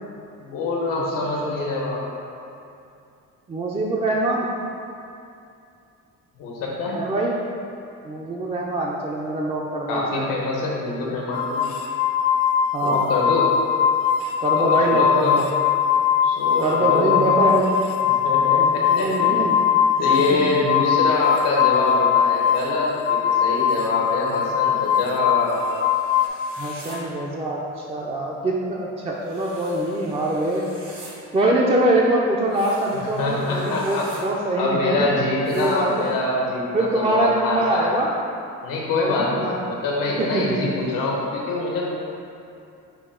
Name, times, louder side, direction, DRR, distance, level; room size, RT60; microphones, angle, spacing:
voice 1, 0.4-2.0 6.4-7.0 9.9-11.6 12.8-13.6 14.5-15.4 16.2-17.3 18.0-19.4 20.0-25.7 32.9-34.1 34.6-37.9 38.6-41.9, left 2 dB, 90° left, -3 dB, 1.0 m, -25 dB
voice 2, 1.0-1.5 3.5-4.5 6.9-7.4 8.0-10.2 12.7-13.1 14.4-15.5 16.6-17.6 18.6-19.6 20.3-20.4 26.6-30.6 31.3-35.0 35.5-36.1 36.7-38.1 38.9-39.6 40.2-40.6, right 1 dB, 20° right, -3 dB, 0.3 m, -24 dB
sound 1, 11.3-26.3, left 8 dB, 75° left, 0.5 m, -21 dB
sound 2, 25.4-27.0 29.2-31.1 32.4-34.2 35.4-36.1, right 2 dB, 65° right, 1.5 m, -45 dB
5.8 x 2.3 x 3.6 m, 2.6 s
cardioid pair, 105°, 32 cm